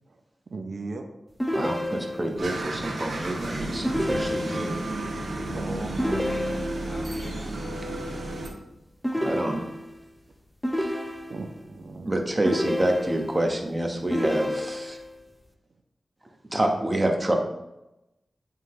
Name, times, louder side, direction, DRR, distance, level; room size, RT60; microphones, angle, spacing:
voice 1, 0.5-1.0 5.5-6.4 11.3-12.6, right 3 dB, 70° right, 4 dB, 0.7 m, -38 dB
sound 1, 1.4-2.4 3.8-4.9 6.0-7.0 9.0-10.1 10.6-11.6 12.5-13.5 14.1-15.1, left 1 dB, 5° left, 0.6 m, -29 dB
voice 2, 1.5-4.7 9.2-9.6 10.8-10.9 12.0-15.0 16.5-17.4, right 1 dB, 25° right, 2 dB, 1.1 m, -27 dB
sound 2, 2.4-8.5, right 1 dB, 85° right, 1.5 m, -32 dB
voice 3, 6.0-7.5, left 1 dB, 35° left, 0 dB, 1.4 m, -45 dB
9.6 x 3.7 x 3.2 m, 0.93 s
wide cardioid pair, 80°, 0 cm